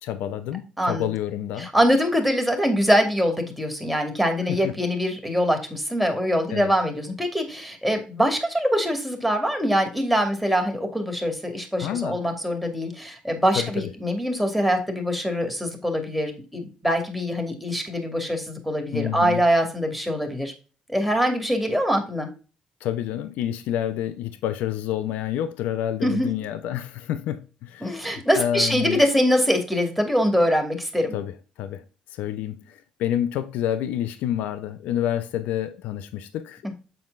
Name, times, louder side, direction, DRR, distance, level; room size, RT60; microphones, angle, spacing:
voice 1, 0.0-1.7 4.5-4.7 6.5-6.7 11.8-12.2 13.6-13.9 18.9-19.4 22.8-29.0 31.1-31.8 32.1-36.7, left 11 dB, 85° left, 0.7 m, -28 dB
voice 2, 0.8-1.1 1.6-20.5 20.9-22.3 26.0-26.3 27.8-31.2 36.6-36.7, equal, ahead, 2.5 m, -23 dB
7.7 x 4.4 x 3.9 m
cardioid pair, 80°, 3 cm